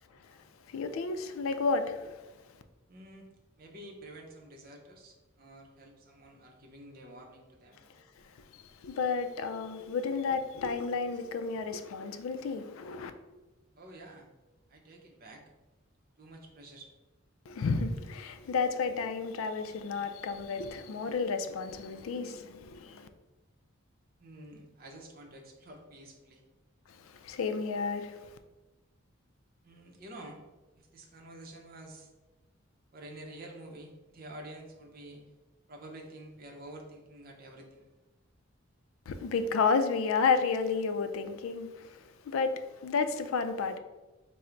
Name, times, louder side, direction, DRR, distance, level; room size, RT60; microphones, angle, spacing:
voice 1, 0.7-2.3 8.5-13.1 17.5-23.1 26.9-28.4 39.1-43.8, left 4 dB, 80° left, 0.3 m, -32 dB
voice 2, 2.9-3.3 3.6-7.9 13.8-14.3 14.7-15.4 16.2-16.9 24.2-26.4 29.6-30.4 30.8-32.1 32.9-35.2 35.7-37.9 42.5-42.6, right 1 dB, 45° right, 0.6 m, -49 dB
3.7 x 2.0 x 4.3 m
head